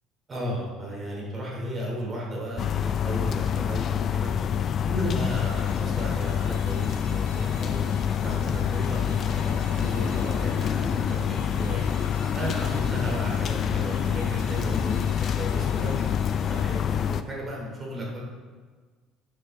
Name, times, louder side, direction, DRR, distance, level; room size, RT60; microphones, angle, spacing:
voice 1, 0.3-4.3 4.8-11.9 12.3-16.1 16.4-18.2, equal, 25° right, -3 dB, 2.7 m, -35 dB
sound 1, 2.6-17.2, left 8 dB, 45° left, 0.4 m, -26 dB
sound 2, 5.2-16.6, left 2 dB, 70° left, 2.5 m, -48 dB
Subway metro underground, 5.4-16.5, right 5 dB, 75° right, 0.8 m, -46 dB
9.9 x 6.2 x 3.6 m, 1.5 s
cardioid pair, 115°, 0 cm